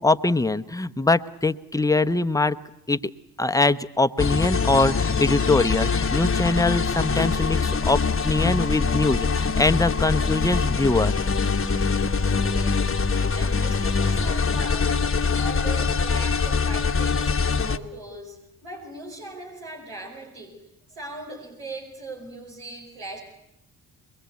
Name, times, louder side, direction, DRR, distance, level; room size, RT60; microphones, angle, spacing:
voice 1, 0.0-2.6 2.9-3.0 3.4-11.1, left 2 dB, 5° left, 11 dB, 0.9 m, -22 dB
sound 1, 4.2-17.8, left 5 dB, 25° left, 1.2 m, -23 dB
voice 2, 12.4-12.9 13.3-15.1 15.3-20.6 20.9-23.2, right 2 dB, 85° right, -2 dB, 5.3 m, -39 dB
23.0 x 22.5 x 8.4 m, 0.82 s
hypercardioid pair, 45°, 49 cm